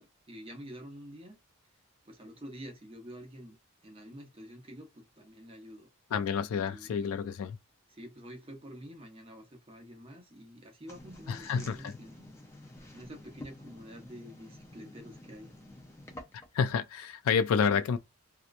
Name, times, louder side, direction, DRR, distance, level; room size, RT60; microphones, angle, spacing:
voice 1, 0.0-1.4 2.0-3.6 3.8-5.9 6.7-6.9 7.9-12.3 12.9-15.5, equal, 25° right, 0.8 m, -48 dB
voice 2, 6.1-7.6 11.3-11.8 16.5-18.0, left 6 dB, 75° left, 0.3 m, -29 dB
sound 1, 10.9-16.6, left 1 dB, 10° left, 0.4 m, -50 dB
2.8 x 2.2 x 2.4 m
head